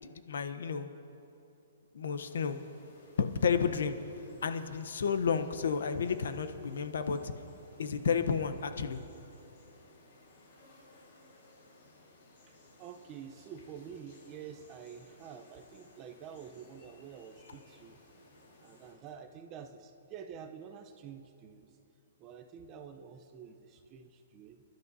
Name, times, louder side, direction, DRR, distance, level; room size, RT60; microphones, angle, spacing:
voice 1, 0.1-0.9 1.9-2.6 3.2-4.0 4.4-7.3 7.8-9.0, left 6 dB, 75° left, 9 dB, 0.8 m, -31 dB
sound 1, 2.2-18.9, left 2 dB, 40° left, 4.0 m, -60 dB
voice 2, 12.5-18.0 18.6-21.7 22.2-24.6, right 7 dB, 20° right, 8 dB, 0.6 m, -48 dB
28.0 x 11.5 x 2.7 m, 2.8 s
hypercardioid pair, 165°, 0 cm